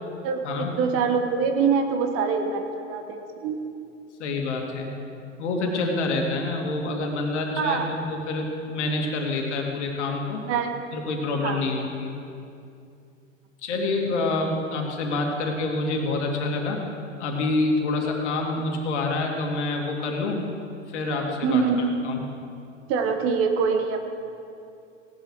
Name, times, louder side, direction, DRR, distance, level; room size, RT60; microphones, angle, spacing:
voice 1, 0.2-3.6 7.6-7.9 10.4-10.7 11.4-11.7 21.4-21.8 22.9-24.0, right 5 dB, 35° right, 6 dB, 1.3 m, -24 dB
voice 2, 4.2-4.9 5.4-10.4 10.9-12.1 13.6-16.8 17.2-20.4 20.9-22.2, left 3 dB, 65° left, 1 dB, 2.5 m, -27 dB
17.5 x 11.0 x 4.8 m, 2.5 s
hypercardioid pair, 110°, 38 cm